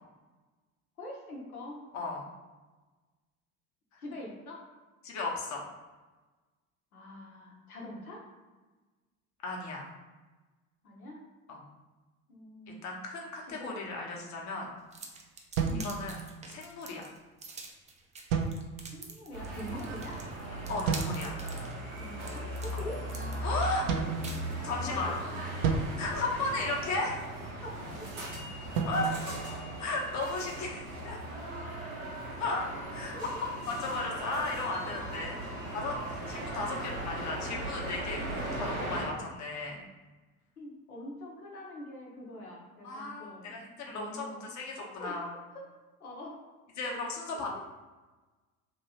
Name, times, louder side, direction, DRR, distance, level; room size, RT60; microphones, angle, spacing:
voice 1, 1.0-1.8 4.0-4.6 6.9-8.2 10.8-11.2 12.3-12.8 13.5-13.8 14.1-14.3 15.4-16.0 18.9-20.2 21.9-23.0 24.9-25.2 26.1-26.2 27.6-28.1 33.1-33.2 40.6-44.5 45.0-45.6 46.0-46.4 46.9-47.1 47.3-47.6, left 1 dB, 85° left, -2 dB, 0.9 m, -44 dB
voice 2, 1.9-2.3 3.9-4.0 5.0-5.6 9.4-9.9 11.5-11.6 12.7-14.7 15.8-16.2 16.5-17.1 19.7-19.8 20.7-21.4 23.4-23.9 24.6-25.1 26.0-27.2 28.9-29.3 29.8-31.2 32.4-33.3 33.7-35.4 35.7-39.8 42.8-45.3 46.8-47.6, left 3 dB, 40° left, -1 dB, 0.9 m, -35 dB
sound 1, 14.9-25.0, right 3 dB, 15° right, 0.4 m, -47 dB
sound 2, 15.6-16.6 18.3-19.1 20.9-21.5 23.9-24.9 25.6-27.1 28.7-30.3, right 5 dB, 65° right, 0.6 m, -34 dB
sound 3, 19.3-39.1, right 1 dB, 85° right, 1.2 m, -38 dB
3.0 x 2.8 x 2.9 m, 1.2 s
figure-of-eight pair, 65°, 43 cm